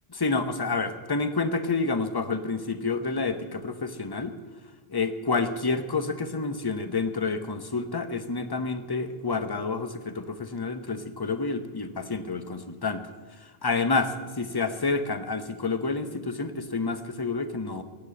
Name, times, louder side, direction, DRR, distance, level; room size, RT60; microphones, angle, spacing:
voice 1, 0.1-4.3 4.9-13.0 13.6-17.8, left 4 dB, 25° left, 9 dB, 0.9 m, -29 dB
17.0 x 9.8 x 7.6 m, 1.3 s
omnidirectional pair, 1.0 m